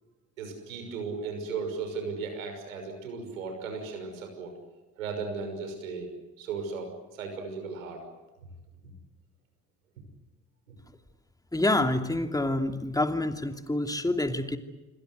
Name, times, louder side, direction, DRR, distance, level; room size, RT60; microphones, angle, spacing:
voice 1, 0.4-4.5 5.0-6.1 6.4-8.0, right 4 dB, 80° right, 5 dB, 6.2 m, -36 dB
voice 2, 11.5-14.6, left 1 dB, 10° left, 7 dB, 2.8 m, -27 dB
27.0 x 25.5 x 8.0 m, 1.1 s
hypercardioid pair, 50°, 40 cm